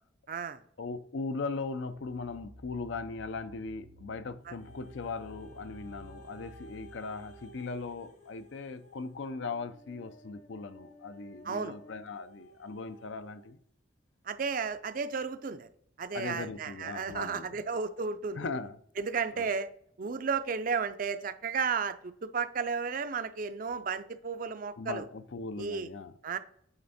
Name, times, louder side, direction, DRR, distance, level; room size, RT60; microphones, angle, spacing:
voice 1, 0.3-0.6 11.4-11.8 14.3-15.7 16.0-18.4 19.0-19.7 20.0-25.1 25.6-25.9 26.2-26.4, right 5 dB, 45° right, 0.4 m, -33 dB
voice 2, 0.8-13.6 16.1-17.6 18.4-18.8 19.3-19.5 24.8-26.1, left 4 dB, 70° left, 0.5 m, -39 dB
sound 1, 1.9-8.6, equal, 80° right, 1.0 m, -54 dB
sound 2, 4.4-13.5 14.2-14.3, right 1 dB, 40° left, 0.9 m, -55 dB
8.9 x 3.4 x 4.1 m
head